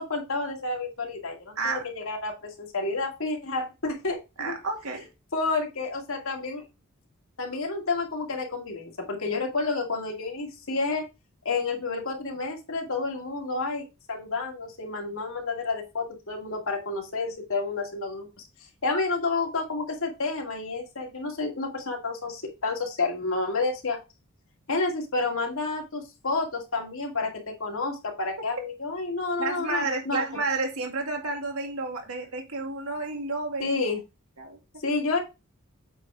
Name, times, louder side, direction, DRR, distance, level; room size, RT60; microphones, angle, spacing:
voice 1, 0.0-4.5 5.3-6.6 7.4-11.0 11.4-18.3 18.8-24.0 24.7-30.2 33.6-34.0 34.8-35.2, left 3 dB, 65° left, 2.1 m, -30 dB
voice 2, 4.4-5.1 29.4-33.8 34.4-34.8, right 3 dB, 80° right, 2.1 m, -31 dB
8.2 x 4.2 x 4.9 m
head